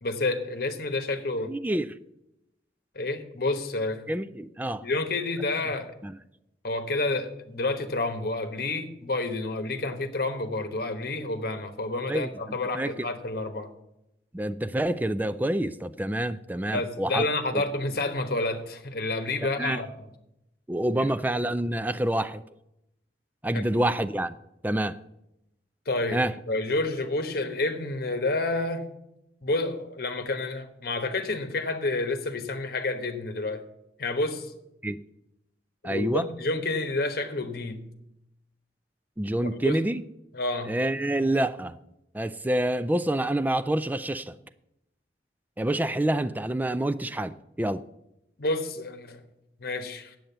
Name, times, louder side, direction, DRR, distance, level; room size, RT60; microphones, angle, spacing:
voice 1, 0.0-1.5 2.9-4.1 4.8-5.9 6.6-13.7 16.7-20.1 23.5-23.6 25.9-26.2 26.5-28.8 29.4-33.6 34.0-34.5 35.8-37.9 39.6-39.8 40.3-40.8 48.4-49.2 49.6-50.2, left 2 dB, 55° left, 1.1 m, -29 dB
voice 2, 1.4-1.9 4.1-4.8 6.0-6.1 12.1-12.9 14.3-17.3 17.5-17.6 19.5-19.8 20.7-22.4 23.4-24.4 24.6-25.0 26.1-26.3 34.8-35.0 35.8-36.2 39.2-40.0 40.7-41.8 42.1-44.4 45.6-47.8, right 1 dB, 10° right, 0.3 m, -27 dB
8.8 x 7.8 x 6.7 m
head